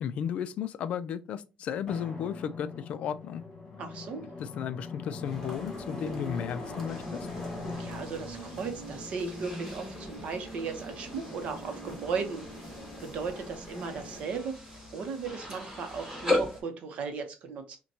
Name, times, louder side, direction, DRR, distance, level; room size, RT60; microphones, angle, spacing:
voice 1, 0.0-3.4 4.4-7.3, left 8 dB, 50° left, 0.3 m, -34 dB
Drum, 1.9-10.2, left 3 dB, 25° left, 1.5 m, -41 dB
voice 2, 3.8-4.3 7.8-12.7 13.0-14.5 14.9-17.8, right 5 dB, 50° right, 0.7 m, -36 dB
sound 1, 5.2-14.2, right 1 dB, 10° left, 1.3 m, -44 dB
sound 2, 6.9-16.6, left 2 dB, 20° right, 1.4 m, -38 dB
5.6 x 2.2 x 2.7 m
cardioid pair, 175°, 3 cm